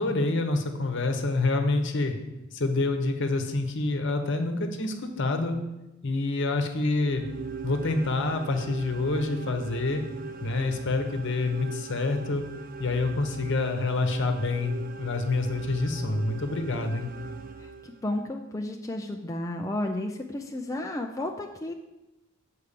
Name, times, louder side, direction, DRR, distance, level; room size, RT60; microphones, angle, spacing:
voice 1, 0.0-2.2 2.5-5.6 6.0-7.3 7.6-10.0 10.4-12.4 12.8-17.1, left 3 dB, 60° left, 5 dB, 1.0 m, -27 dB
sound 1, 6.9-18.2, right 5 dB, 40° right, 0.5 m, -41 dB
voice 2, 17.6-21.7, left 1 dB, 15° left, 2 dB, 0.4 m, -32 dB
7.2 x 4.6 x 6.7 m, 0.99 s
head